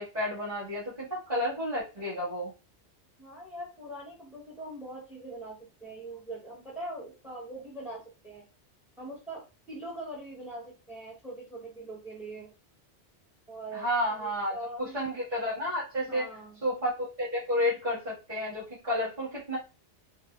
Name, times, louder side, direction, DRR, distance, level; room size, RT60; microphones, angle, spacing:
voice 1, 0.0-2.5 13.7-16.2 16.6-19.6, left 1 dB, 35° right, -9 dB, 1.7 m, -31 dB
voice 2, 3.2-8.5 9.0-12.5 13.5-15.0 16.1-16.6 19.5-19.6, right 1 dB, ahead, -3 dB, 0.6 m, -42 dB
4.3 x 2.0 x 2.3 m, 0.30 s
omnidirectional pair, 1.2 m